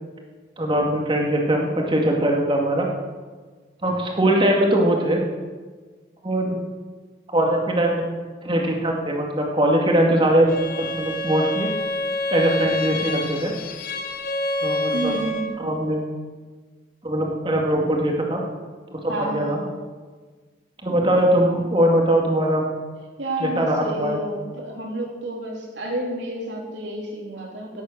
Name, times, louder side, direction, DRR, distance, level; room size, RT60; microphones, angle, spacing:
voice 1, 0.6-2.9 3.8-5.2 6.2-6.6 7.3-8.1 8.4-10.5 10.8-11.7 12.3-13.5 14.6-15.2 15.6-16.0 17.0-18.4 18.9-19.6 20.8-22.6 23.4-24.2, right 1 dB, 25° right, 0 dB, 2.2 m, -21 dB
Bowed string instrument, 10.5-15.6, left 2 dB, 50° left, 1.0 m, -27 dB
voice 2, 14.9-15.5 19.1-19.7 23.2-27.8, right 1 dB, 70° right, -1 dB, 3.4 m, -30 dB
17.0 x 8.2 x 6.6 m, 1.4 s
head